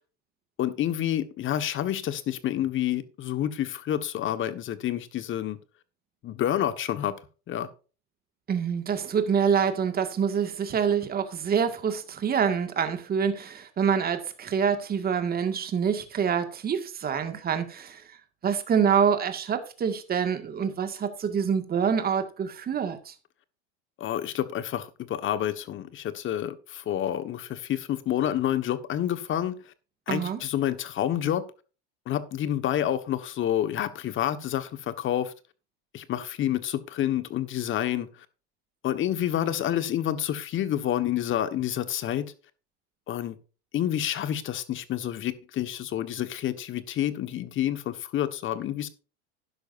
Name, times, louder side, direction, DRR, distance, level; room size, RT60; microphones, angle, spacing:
voice 1, 0.6-5.6 6.2-7.1 7.5-7.7 24.0-29.7 30.1-31.4 32.1-35.3 35.9-38.1 38.8-42.2 43.1-43.3 43.7-48.9, left 11 dB, 35° left, 1.5 m, -28 dB
voice 2, 8.5-18.0 18.4-23.1 30.1-30.4, right 7 dB, 25° right, 2.0 m, -26 dB
12.5 x 10.5 x 2.7 m
supercardioid pair, 120°, 33 cm